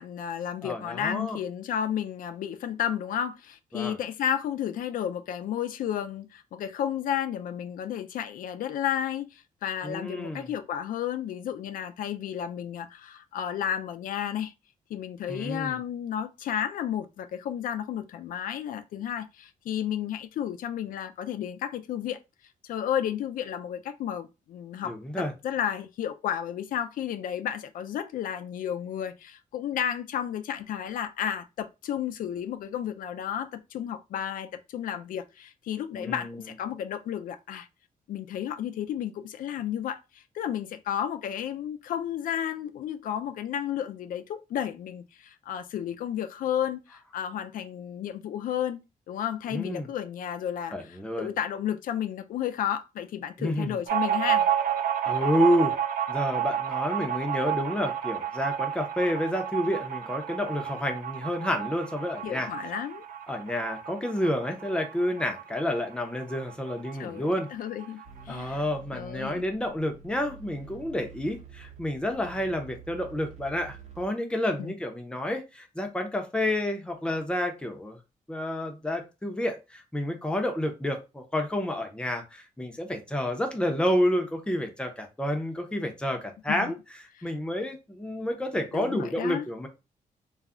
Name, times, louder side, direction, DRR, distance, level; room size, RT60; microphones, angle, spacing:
voice 1, 0.0-14.5 14.9-22.2 22.6-37.7 38.1-48.8 49.1-54.5 62.2-63.0 67.0-68.0 68.3-68.6 68.9-69.4 74.6-74.7 86.5-86.7 87.2-87.3 88.7-89.5, left 9 dB, 75° left, 0.4 m, -32 dB
voice 2, 0.6-1.4 3.7-4.0 9.8-10.5 15.3-15.8 24.8-25.3 35.9-36.5 49.5-49.9 50.7-51.3 53.4-53.8 55.1-55.7 56.1-62.5 63.3-67.5 68.3-78.0 78.3-86.8 87.2-89.7, left 1 dB, 5° left, 0.5 m, -29 dB
sound 1, 53.9-67.0 67.3-67.4 67.7-68.4, right 9 dB, 85° right, 0.5 m, -31 dB
sound 2, 68.0-74.1, right 5 dB, 55° right, 0.8 m, -48 dB
2.3 x 2.0 x 3.6 m
wide cardioid pair, 165°, 14 cm